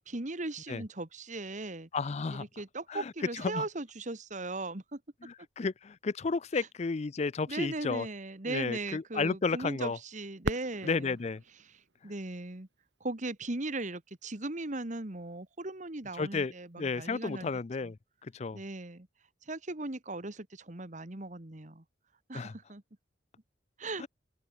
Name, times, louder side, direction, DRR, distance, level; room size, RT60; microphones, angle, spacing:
voice 1, 0.0-1.9 2.3-5.0 6.6-6.7 7.5-11.2 12.0-12.7 13.0-17.5 17.8-17.9 18.5-19.1 19.5-21.8 22.3-22.8 23.8-24.0, right 2 dB, 45° right, 1.7 m, -38 dB
voice 2, 1.9-2.4 2.9-3.7 5.2-8.1 8.5-10.0 10.8-11.4 16.2-16.5 16.8-18.0 18.2-18.6 22.3-22.5 24.0-24.1, left 4 dB, 35° left, 0.4 m, -32 dB
Fireworks, 10.4-13.2 13.9-14.0 14.7-15.1 17.0-17.1, right 2 dB, 70° right, 3.3 m, -40 dB
open air
head